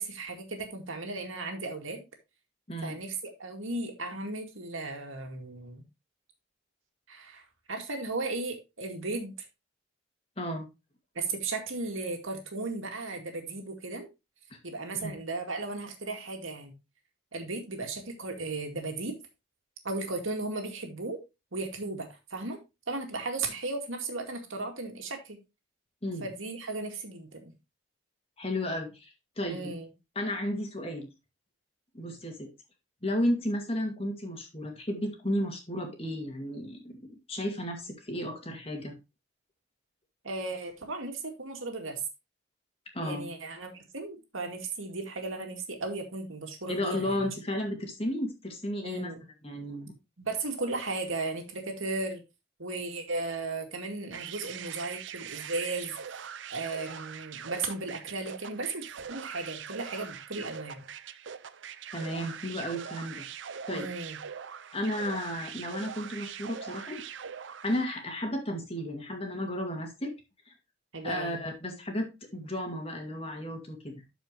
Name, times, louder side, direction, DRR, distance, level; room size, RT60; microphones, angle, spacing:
voice 1, 0.0-2.0 2.8-3.1 3.4-5.8 7.1-7.4 7.7-9.3 11.2-14.1 14.6-16.7 17.3-19.2 19.8-21.2 21.5-22.6 22.9-25.4 26.2-27.5 29.5-29.9 40.2-42.0 43.0-47.3 48.8-49.2 50.2-52.2 52.6-55.9 56.5-60.8 63.7-64.2 70.9-71.4, right 3 dB, 85° right, 4 dB, 2.2 m, -35 dB
voice 2, 2.7-3.0 10.4-10.7 14.5-14.6 14.9-15.1 26.0-26.2 28.4-29.7 30.2-31.1 31.9-32.5 33.0-38.9 42.9-43.3 46.7-49.1 49.4-49.9 61.9-63.2 63.7-63.9 64.7-67.0 67.6-70.1 70.5-70.6 71.0-74.0, left 1 dB, 30° left, 2 dB, 2.1 m, -33 dB
sound 1, 54.1-67.9, right 7 dB, 65° right, 0.6 m, -42 dB
12.5 x 5.0 x 3.1 m, 0.25 s
head